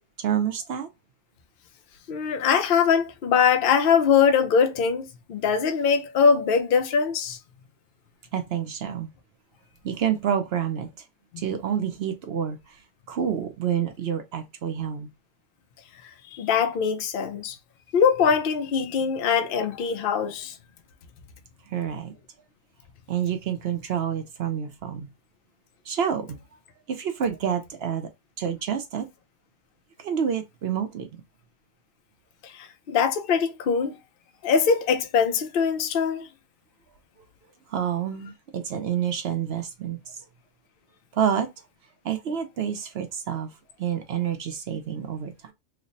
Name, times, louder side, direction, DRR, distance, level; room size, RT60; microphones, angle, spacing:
voice 1, 0.2-0.9 8.3-9.1 9.8-11.0 11.4-12.8 13.1-15.1 21.7-22.1 23.1-25.1 25.8-26.4 26.9-28.1 28.4-29.1 30.0-31.2 37.7-40.2 41.1-41.5 42.0-45.5, right 8 dB, 60° right, 0.7 m, -28 dB
voice 2, 2.1-7.4 16.3-17.6 17.9-20.5 32.5-33.9 34.4-36.3, left 6 dB, 55° left, 0.7 m, -22 dB
3.2 x 2.1 x 3.9 m
omnidirectional pair, 1.4 m